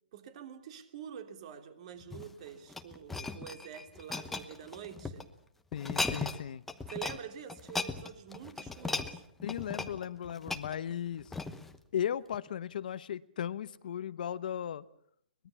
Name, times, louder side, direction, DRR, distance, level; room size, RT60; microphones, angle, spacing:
voice 1, 0.1-5.3 6.9-9.2, right 8 dB, 40° right, 7 dB, 3.1 m, -46 dB
sound 1, 2.0-5.2 5.7-6.4 6.7-7.2 7.5-11.8 12.3-12.5, left 3 dB, 5° left, 1.1 m, -37 dB
voice 2, 5.7-6.6 9.4-11.3 11.9-14.8, left 9 dB, 55° left, 15 dB, 0.9 m, -36 dB
23.5 x 21.0 x 7.1 m, 0.68 s
hypercardioid pair, 155°, 5 cm